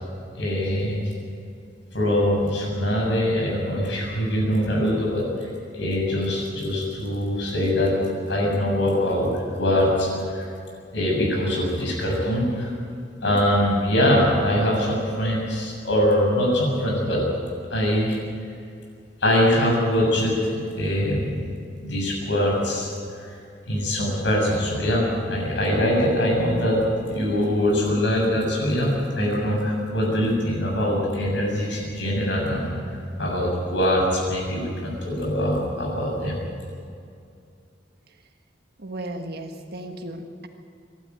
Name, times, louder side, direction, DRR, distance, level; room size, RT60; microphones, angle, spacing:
voice 1, 0.3-1.0 1.9-5.5 5.7-7.9 8.3-10.5 10.9-12.7 13.2-17.2 17.7-18.2 19.2-21.5 21.8-22.9 23.2-23.3 23.7-32.8 33.2-36.4, equal, 75° left, -1 dB, 7.1 m, -23 dB
voice 2, 38.8-40.5, right 1 dB, 60° right, 4 dB, 1.5 m, -35 dB
23.0 x 12.5 x 9.6 m, 2.4 s
head